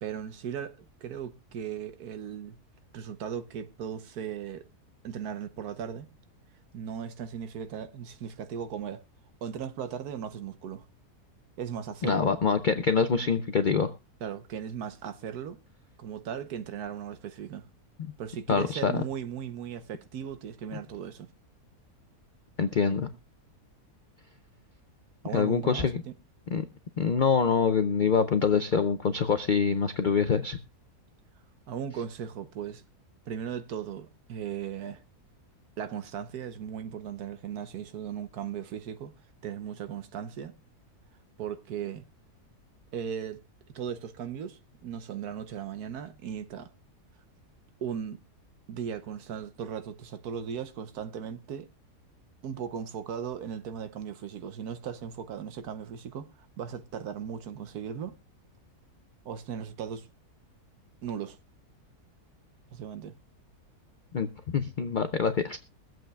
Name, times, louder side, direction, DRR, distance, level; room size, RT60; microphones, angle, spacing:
voice 1, 0.0-2.6 2.9-4.6 5.0-6.1 6.7-9.0 9.4-10.8 11.6-12.3 14.2-15.6 16.0-17.6 18.2-21.3 25.2-26.1 31.7-32.8 33.3-35.0 35.8-39.1 39.4-40.5 41.4-42.1 42.9-43.4 43.7-46.7 47.8-48.2 48.7-51.7 52.4-56.3 56.6-58.2 59.2-60.1 61.0-61.4 62.7-63.1, right 8 dB, 75° right, 1.4 m, -37 dB
voice 2, 12.0-13.9 18.5-19.0 22.6-23.1 25.3-26.0 26.5-26.6 27.0-30.6 64.1-64.3 64.5-65.6, left 5 dB, 75° left, 0.4 m, -25 dB
23.0 x 7.7 x 2.2 m
omnidirectional pair, 1.7 m